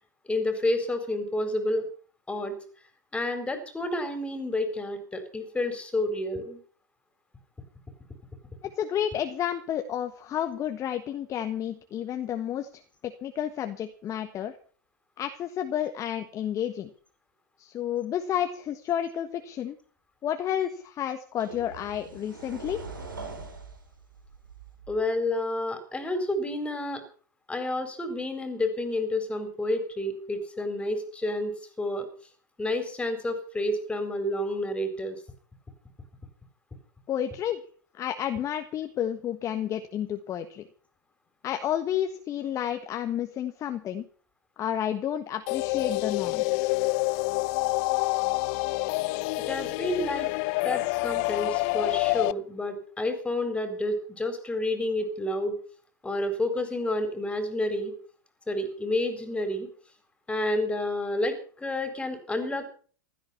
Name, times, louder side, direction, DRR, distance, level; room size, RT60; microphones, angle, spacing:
voice 1, 0.3-1.9 2.3-2.6 3.1-6.6 24.9-27.0 27.5-31.5 31.8-32.1 32.6-35.2 49.5-50.3 50.6-55.6 56.0-57.9 58.5-59.7 60.3-62.7, left 1 dB, 10° left, 8 dB, 4.2 m, -29 dB
voice 2, 8.6-12.7 13.0-14.5 15.2-16.9 17.6-19.8 20.2-22.8 37.1-37.6 37.9-40.6 41.4-44.0 44.6-46.7, left 10 dB, 30° left, 8 dB, 1.4 m, -31 dB
sound 1, 20.6-20.7 21.4-25.2, right 3 dB, 85° right, 4.6 m, -43 dB
sound 2, 45.5-52.3, left 24 dB, 45° left, 0.6 m, -27 dB
16.0 x 13.5 x 5.7 m, 0.43 s
hypercardioid pair, 100°, 11 cm